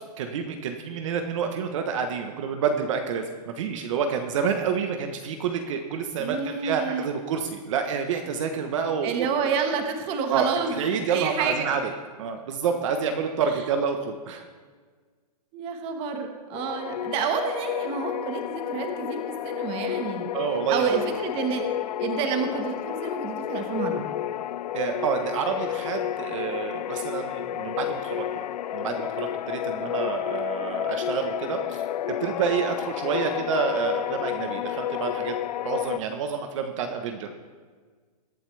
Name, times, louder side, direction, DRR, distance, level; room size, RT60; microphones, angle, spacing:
voice 1, 0.0-9.3 10.3-11.8 12.2-14.4 20.3-21.0 24.7-28.5 28.7-31.8 32.2-35.3 35.6-37.3, right 6 dB, 50° right, 5 dB, 1.1 m, -28 dB
voice 2, 6.2-7.1 9.0-10.8 11.1-11.7 15.5-20.3 20.7-21.6 22.0-24.1, right 6 dB, 25° right, 5 dB, 1.4 m, -29 dB
sound 1, 16.5-36.0, left 11 dB, 80° left, 0.4 m, -31 dB
22.0 x 8.7 x 3.4 m, 1.5 s
hypercardioid pair, 155°, 20 cm